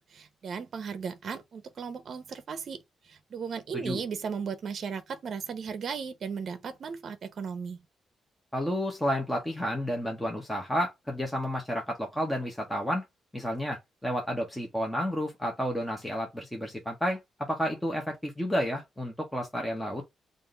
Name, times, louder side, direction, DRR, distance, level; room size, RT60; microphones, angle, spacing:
voice 1, 0.0-7.8, right 6 dB, 55° right, 0.7 m, -36 dB
voice 2, 8.5-13.0 13.3-20.0, equal, 5° left, 0.9 m, -31 dB
3.5 x 2.6 x 3.8 m
cardioid pair, 130°, 0 cm